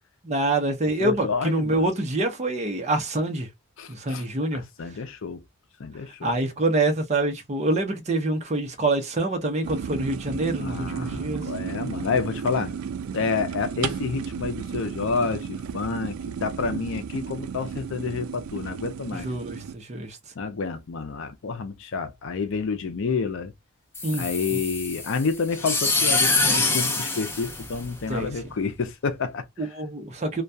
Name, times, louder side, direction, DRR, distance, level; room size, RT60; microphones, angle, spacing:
voice 1, 0.2-3.5 3.9-4.6 6.2-11.4 19.1-20.2 24.0-24.3 24.5-24.6 28.1-28.3 29.6-30.4, right 2 dB, 30° right, 0.6 m, -26 dB
voice 2, 1.0-1.8 3.8-4.2 4.5-5.4 5.8-6.3 10.6-12.7 13.1-19.3 20.4-23.5 24.1-29.7, left 4 dB, 65° left, 0.5 m, -29 dB
sound 1, 9.6-19.7, right 7 dB, 75° right, 0.3 m, -33 dB
sound 2, 23.9-28.3, left 3 dB, 10° left, 0.6 m, -25 dB
2.2 x 2.2 x 2.6 m
head